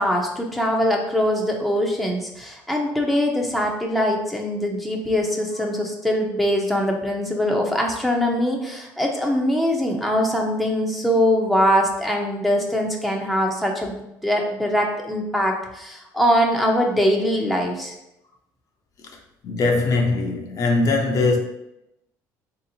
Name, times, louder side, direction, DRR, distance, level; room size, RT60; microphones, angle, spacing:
voice 1, 0.0-17.9, equal, ahead, 0.6 m, -22 dB
voice 2, 19.1-21.4, left 3 dB, 50° left, 0.6 m, -21 dB
3.5 x 2.8 x 2.7 m
supercardioid pair, 90°, 8 cm